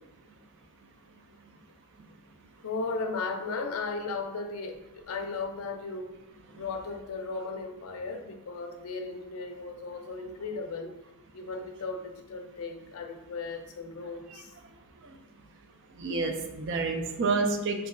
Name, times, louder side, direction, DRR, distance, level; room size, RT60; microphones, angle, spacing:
voice 1, 2.6-6.1 6.6-10.9 11.3-14.5, left 4 dB, 70° left, 5 dB, 0.5 m, -36 dB
voice 2, 16.0-17.9, right 3 dB, 60° right, 5 dB, 0.4 m, -29 dB
3.0 x 2.7 x 3.6 m, 0.95 s
head